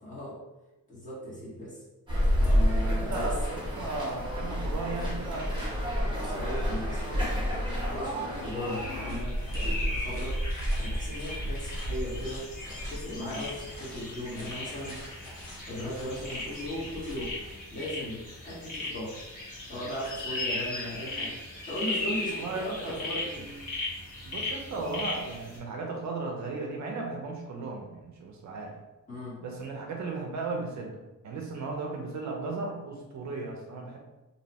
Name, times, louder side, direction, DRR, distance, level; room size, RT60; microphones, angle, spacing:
voice 1, 0.0-0.4 0.9-1.8 2.4-3.4 6.1-7.3 7.8-10.4 10.7-12.5 12.9-15.0 15.7-17.4 17.7-19.2 19.7-21.4 21.7-23.5 29.1-29.4, left 1 dB, 25° left, -7 dB, 0.8 m, -37 dB
sound 1, 2.1-9.2, equal, 15° right, 0.8 m, -29 dB
voice 2, 2.9-5.6 22.3-23.0 24.3-28.7 29.4-34.0, right 3 dB, 55° right, 1 dB, 0.4 m, -36 dB
sound 2, 8.4-25.6, left 2 dB, 60° left, 1.0 m, -38 dB
sound 3, 9.1-17.5, equal, 75° left, 1.3 m, -36 dB
2.6 x 2.0 x 2.8 m, 1.0 s
wide cardioid pair, 160°, 34 cm